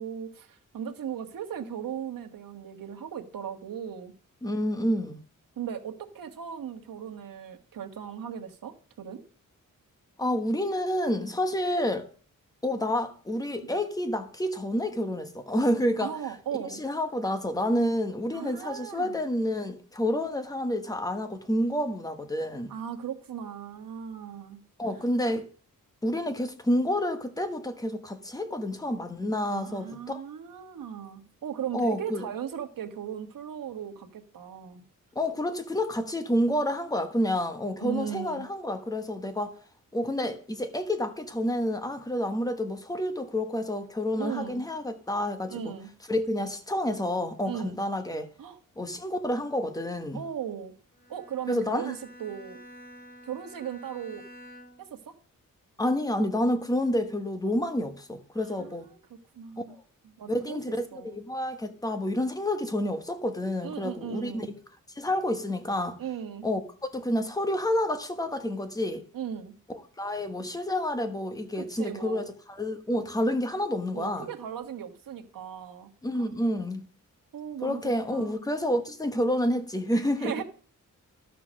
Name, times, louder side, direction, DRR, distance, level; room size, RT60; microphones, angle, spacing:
voice 1, 0.0-4.1 5.6-9.2 16.0-16.8 18.3-19.2 22.7-24.6 29.5-34.8 37.8-38.5 44.2-44.6 45.5-45.9 47.4-47.8 48.4-48.6 50.1-50.7 51.1-52.6 53.2-54.2 54.8-55.1 58.4-59.8 60.0-61.2 63.6-64.5 66.0-66.5 69.1-69.5 71.6-72.3 73.9-75.9 76.2-76.3 77.3-78.5 80.2-80.4, right 8 dB, 85° right, 1.5 m, -37 dB
voice 2, 4.4-5.2 10.2-12.1 12.6-16.1 16.8-22.7 24.8-25.5 26.0-30.2 31.7-32.2 35.1-39.5 39.9-45.7 46.1-48.3 48.8-50.2 51.5-51.9 55.8-58.9 59.6-59.7 60.3-64.5 64.9-66.0 66.4-69.0 69.7-74.3 76.0-76.8 77.6-80.4, left 1 dB, 10° left, 1.1 m, -29 dB
Bowed string instrument, 50.9-55.0, equal, 25° left, 3.0 m, -49 dB
12.5 x 6.0 x 6.3 m
wide cardioid pair, 165°, 33 cm